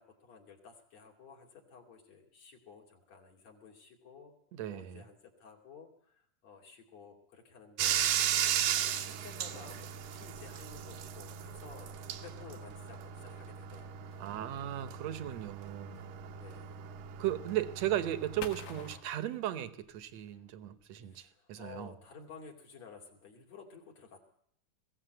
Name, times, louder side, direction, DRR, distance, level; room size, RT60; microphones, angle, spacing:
voice 1, 0.0-4.3 4.7-8.0 8.2-14.1 16.3-16.8 21.0-24.2, left 5 dB, 55° left, 0 dB, 4.0 m, -54 dB
voice 2, 4.5-5.0 14.2-16.1 17.2-21.9, right 12 dB, 65° right, 12 dB, 2.0 m, -36 dB
Bathtub (filling or washing), 7.8-19.0, right 10 dB, 85° right, 2.9 m, -36 dB
sound 1, 12.9-21.3, left 8 dB, 85° left, 3.2 m, -54 dB
21.0 x 16.0 x 8.1 m, 0.68 s
omnidirectional pair, 3.8 m